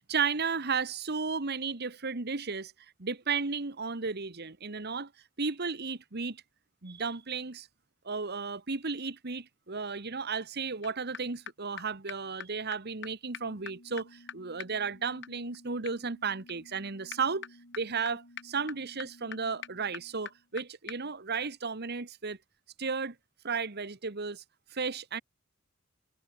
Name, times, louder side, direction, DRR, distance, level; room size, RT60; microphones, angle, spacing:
voice 1, 0.0-2.7 3.0-5.1 5.4-6.4 6.8-7.7 8.0-17.5 17.8-22.4 22.8-23.1 23.4-24.4 24.7-25.2, right 5 dB, 55° right, 1.4 m, -34 dB
sound 1, 10.8-10.9 11.1-11.2 11.5-11.6 11.8-11.9 12.1-12.2 12.4-12.5 12.7-12.8 13.0-13.1 13.3-20.6 20.9-21.0, left 7 dB, 60° left, 6.4 m, -46 dB
head